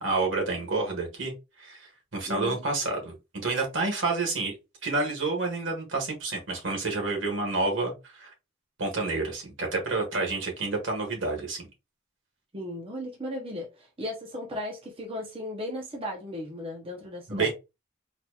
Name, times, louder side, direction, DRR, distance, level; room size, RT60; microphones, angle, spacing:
voice 1, 0.0-3.1 3.4-4.5 4.8-8.3 8.8-11.7 17.3-17.5, right 3 dB, 65° right, 1.5 m, -29 dB
voice 2, 2.2-2.6 12.5-17.5, left 1 dB, 25° right, 0.8 m, -36 dB
4.1 x 3.0 x 2.3 m
head